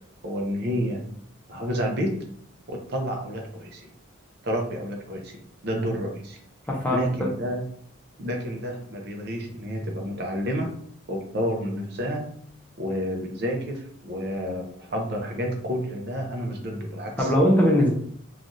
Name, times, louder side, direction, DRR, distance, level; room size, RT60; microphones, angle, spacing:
voice 1, 0.2-1.0 1.5-2.1 2.7-3.8 4.4-5.3 5.6-6.4 6.9-7.6 8.2-10.7 11.1-12.3 12.8-13.8 14.0-17.3, equal, 50° right, 2 dB, 0.6 m, -29 dB
voice 2, 6.7-7.3 17.2-17.9, equal, 10° left, -3 dB, 0.6 m, -21 dB
3.2 x 2.4 x 2.6 m, 0.62 s
head